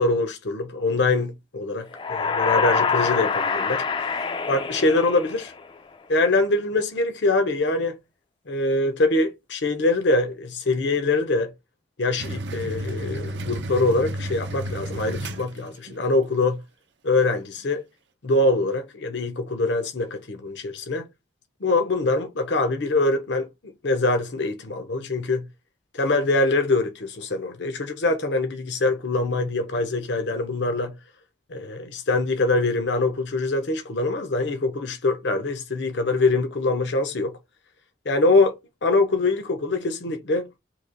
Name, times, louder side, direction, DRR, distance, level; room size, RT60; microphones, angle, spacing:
voice 1, 0.0-3.8 4.5-5.5 6.1-8.0 8.5-11.5 12.0-16.6 17.0-17.8 18.2-21.1 21.6-23.5 23.8-25.4 25.9-30.9 31.5-37.3 38.1-38.5 38.8-40.5, left 2 dB, 75° left, 0.7 m, -23 dB
sound 1, 1.9-5.8, left 5 dB, 25° left, 0.3 m, -25 dB
sound 2, 12.2-16.0, right 1 dB, 70° right, 0.6 m, -32 dB
3.0 x 2.8 x 3.9 m
head